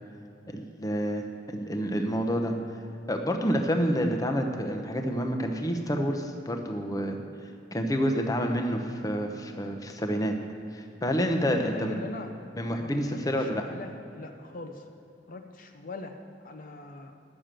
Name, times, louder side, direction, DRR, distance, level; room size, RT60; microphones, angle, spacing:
voice 1, 0.5-2.5 3.1-7.2 7.7-10.3 10.7-12.0 12.6-13.6, equal, 20° left, 3 dB, 0.8 m, -28 dB
voice 2, 11.6-12.3 12.7-14.9 15.3-16.2 16.4-17.1, left 3 dB, 50° left, 5 dB, 0.6 m, -42 dB
11.0 x 6.8 x 7.5 m, 2.8 s
head